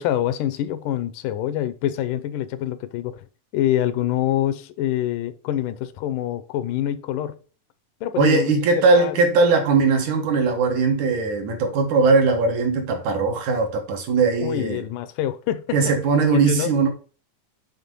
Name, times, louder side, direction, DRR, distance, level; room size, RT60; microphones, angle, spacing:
voice 1, 0.0-3.2 3.5-7.4 8.0-8.6 9.0-9.2 14.4-15.9 16.3-16.8, left 12 dB, 85° left, 2.2 m, -25 dB
voice 2, 8.2-14.8 15.7-16.9, right 4 dB, 70° right, 2.7 m, -19 dB
7.5 x 3.6 x 5.3 m
omnidirectional pair, 3.6 m